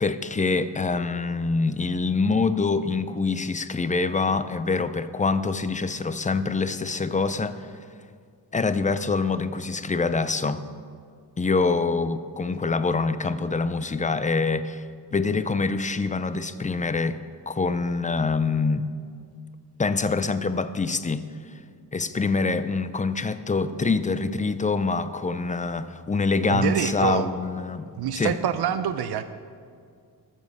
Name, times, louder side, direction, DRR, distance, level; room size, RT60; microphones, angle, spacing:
voice 1, 0.0-7.7 8.5-10.6 11.4-14.8 15.1-17.2 17.5-18.9 19.8-21.6 21.9-28.4, left 4 dB, 20° left, 12 dB, 0.5 m, -25 dB
voice 2, 26.5-27.3 28.0-29.2, right 9 dB, 80° right, 11 dB, 0.6 m, -26 dB
14.0 x 7.3 x 6.4 m, 2.2 s
wide cardioid pair, 120°, 38 cm